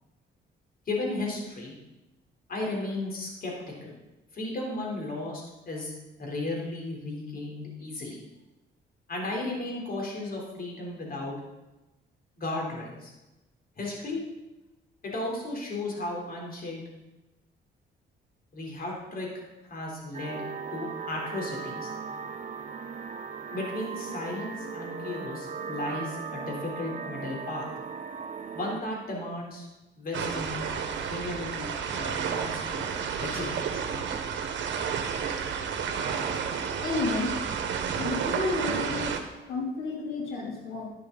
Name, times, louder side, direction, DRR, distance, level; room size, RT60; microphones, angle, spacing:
voice 1, 0.9-1.7 2.5-3.5 3.8-3.9 4.3-5.9 6.2-8.2 9.1-11.4 12.4-13.1 13.8-14.2 15.0-16.8 18.5-19.3 19.6-20.4 20.7-21.9 23.5-27.7 28.5-29.7 30.0-30.6 31.0-32.9 33.2-33.8, left 2 dB, 50° left, -1 dB, 4.0 m, -35 dB
sound 1, 20.1-28.8, right 5 dB, 40° right, 0.8 m, -38 dB
sound 2, 30.1-39.2, right 6 dB, 70° right, 1.3 m, -31 dB
voice 2, 36.8-37.3 37.9-39.1 39.5-40.9, left 3 dB, 90° left, -3 dB, 3.4 m, -31 dB
11.5 x 11.0 x 4.1 m, 1.0 s
cardioid pair, 90°, 20 cm